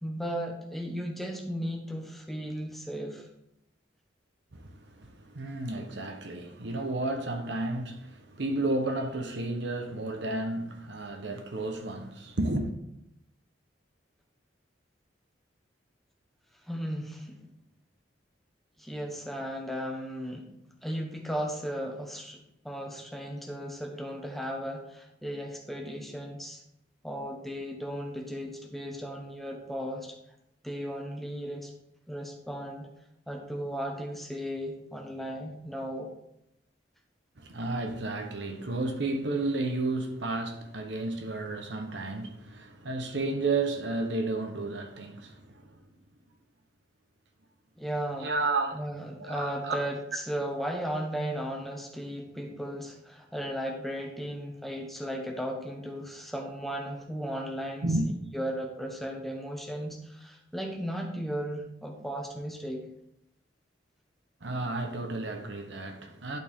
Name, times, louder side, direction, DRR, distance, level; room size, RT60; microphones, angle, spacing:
voice 1, 0.0-3.3 16.7-17.4 18.8-20.5 20.8-26.6 27.0-30.2 30.6-31.7 32.1-32.9 33.3-36.1 47.8-48.3 48.7-62.8, equal, ahead, 1.1 m, -36 dB
voice 2, 4.5-12.7 37.4-45.7 48.2-48.8 49.2-49.8 57.8-58.0 64.4-66.4, right 2 dB, 65° right, 1.0 m, -32 dB
11.5 x 4.5 x 3.6 m
head